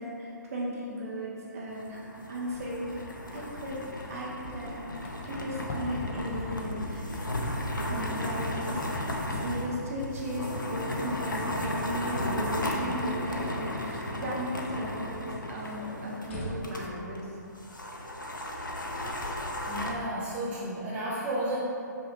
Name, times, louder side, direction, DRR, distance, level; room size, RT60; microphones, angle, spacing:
voice 1, 0.0-4.8 5.2-7.4 7.8-8.8 9.3-17.4, equal, 50° right, -5 dB, 1.0 m, -36 dB
sound 1, 1.7-16.9 17.1-17.2 17.6-19.9, left 1 dB, 90° left, 0.5 m, -35 dB
sound 2, 2.5-19.9, left 1 dB, 35° left, 0.6 m, -46 dB
voice 2, 19.7-21.6, right 1 dB, 15° right, -9 dB, 0.6 m, -32 dB
5.1 x 2.8 x 2.8 m, 2.6 s
figure-of-eight pair, 130°, 10 cm